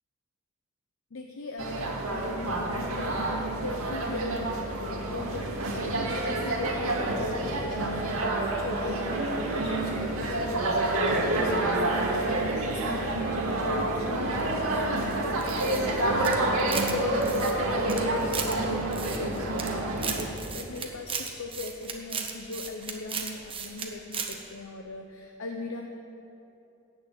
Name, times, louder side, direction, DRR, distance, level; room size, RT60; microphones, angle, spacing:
voice 1, 1.1-8.1 8.6-25.9, left 2 dB, 65° left, 3 dB, 0.9 m, -39 dB
sound 1, 1.6-20.3, right 2 dB, 75° right, 2.1 m, -28 dB
sound 2, 15.4-17.0 17.2-18.5 18.9-19.7 20.0-23.9 24.1-24.4, right 6 dB, 25° right, 1.2 m, -35 dB
18.0 x 6.8 x 8.5 m, 2.9 s
head